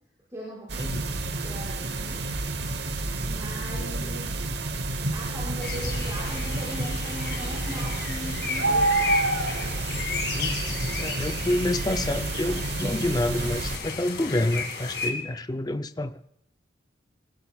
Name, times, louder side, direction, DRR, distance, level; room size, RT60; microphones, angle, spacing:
voice 1, 0.3-1.1 1.4-2.3 3.2-4.3 5.1-9.4, equal, 15° right, -8 dB, 5.4 m, -39 dB
sound 1, 0.7-13.8, right 2 dB, 65° right, 1.1 m, -29 dB
sound 2, 5.6-15.1, left 4 dB, 60° left, 2.0 m, -34 dB
voice 2, 10.3-10.7 11.0-16.2, left 1 dB, 20° left, 10 dB, 0.5 m, -28 dB
23.0 x 19.0 x 2.4 m, 0.72 s
head